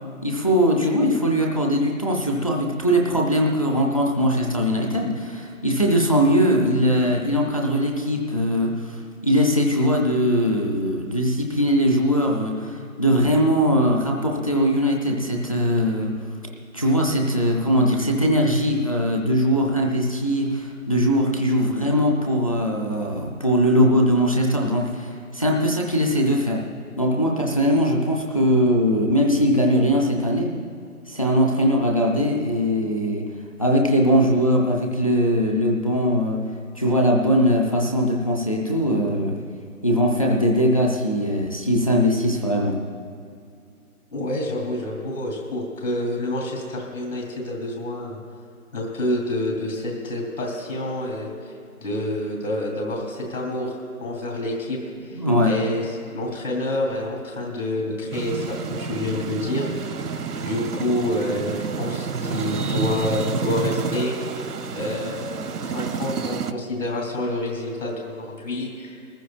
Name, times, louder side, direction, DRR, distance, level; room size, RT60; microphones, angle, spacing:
voice 1, 0.2-16.1 16.7-26.6 27.0-30.5 31.1-33.3 33.6-36.4 36.7-39.4 39.8-42.8 55.1-55.5, equal, 25° left, -1 dB, 0.7 m, -21 dB
voice 2, 44.1-48.2 48.7-51.5 51.8-59.7 60.4-64.2 64.7-65.3 65.6-68.9, left 1 dB, 55° left, -1 dB, 3.4 m, -28 dB
sound 1, 58.1-66.5, right 5 dB, 85° right, 0.9 m, -29 dB
21.5 x 14.5 x 2.5 m, 2.4 s
hypercardioid pair, 170°, 45 cm